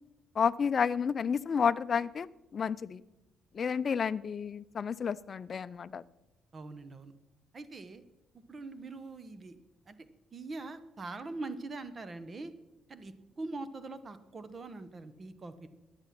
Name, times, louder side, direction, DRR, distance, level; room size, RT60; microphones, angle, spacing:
voice 1, 0.4-2.3 2.5-3.0 3.5-6.0, left 6 dB, 45° left, 17 dB, 0.5 m, -30 dB
voice 2, 6.5-7.1 7.5-8.0 8.3-9.6 9.9-10.0 10.3-12.5 12.9-15.7, right 3 dB, 40° right, 12 dB, 1.0 m, -43 dB
13.5 x 9.9 x 5.9 m, 0.99 s
cardioid pair, 90°, 0 cm